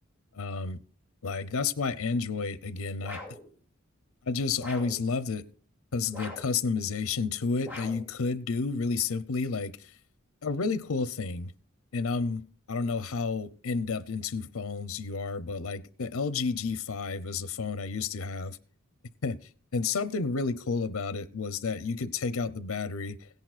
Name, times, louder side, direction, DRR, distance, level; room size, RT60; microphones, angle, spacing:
voice 1, 0.3-0.8 1.2-3.2 4.3-5.4 5.9-9.9 10.4-11.5 11.9-18.6 19.2-19.4 19.7-23.3, left 4 dB, 85° left, 0.7 m, -31 dB
sound 1, 3.0-3.5 4.6-5.1 6.1-6.6 7.6-8.1, left 2 dB, 10° right, 2.6 m, -42 dB
17.0 x 10.5 x 2.4 m
head